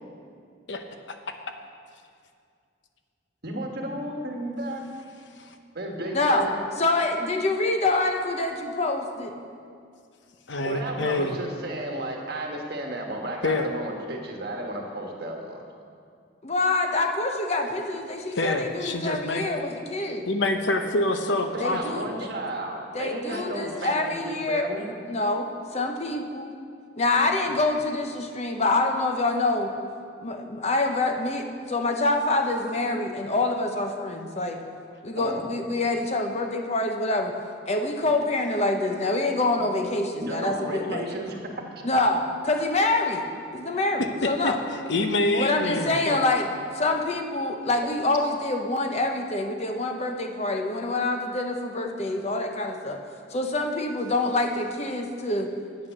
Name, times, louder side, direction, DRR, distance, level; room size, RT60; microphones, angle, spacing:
voice 1, 3.4-4.8 5.7-6.6 10.6-15.6 21.5-24.8 35.1-35.5 40.2-41.4 43.7-43.8, right 1 dB, 55° right, 1 dB, 1.4 m, -33 dB
voice 2, 6.1-6.5 6.8-9.4 16.4-20.2 21.6-22.1 22.9-26.5 27.0-29.7 30.2-34.6 35.0-37.3 37.7-41.0 41.8-43.2 43.5-44.6 45.4-46.5 46.7-53.0 53.3-55.5, left 2 dB, 35° left, 4 dB, 0.8 m, -26 dB
voice 3, 10.5-11.3 13.4-13.7 18.3-19.5 20.3-21.8 23.3-23.4 44.2-44.5 44.9-46.2, left 2 dB, 65° left, 6 dB, 0.8 m, -26 dB
8.8 x 8.8 x 6.7 m, 2.3 s
head